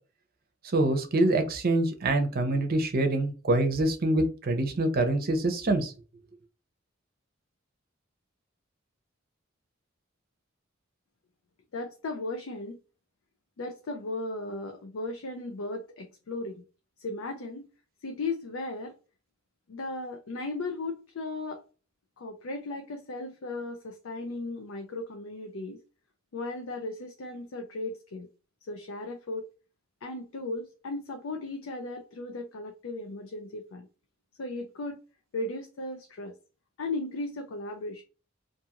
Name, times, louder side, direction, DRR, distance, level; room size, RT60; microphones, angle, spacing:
voice 1, 0.7-5.9, right 2 dB, 50° right, 0.6 m, -25 dB
voice 2, 11.7-12.8 13.6-16.6 17.0-17.7 18.0-18.9 19.7-21.6 22.2-25.8 26.3-28.3 28.7-29.5 30.0-33.9 34.4-35.0 35.3-36.4 36.8-38.0, left 2 dB, 75° left, 0.5 m, -36 dB
2.6 x 2.4 x 2.8 m
head